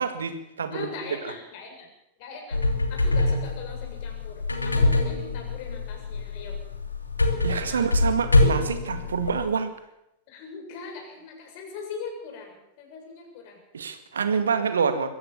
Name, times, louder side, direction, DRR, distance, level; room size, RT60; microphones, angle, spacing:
voice 1, 0.0-0.9 7.4-9.7 13.7-15.1, right 6 dB, 70° right, 9 dB, 1.9 m, -27 dB
voice 2, 0.7-1.9 2.2-2.6 2.9-6.6 7.4-8.0 10.3-13.6, left 5 dB, 50° left, 2 dB, 7.2 m, -40 dB
sound 1, 2.5-9.4, left 2 dB, 80° left, 2.7 m, -24 dB
22.5 x 15.5 x 7.4 m, 0.85 s
figure-of-eight pair, 90°, 0 cm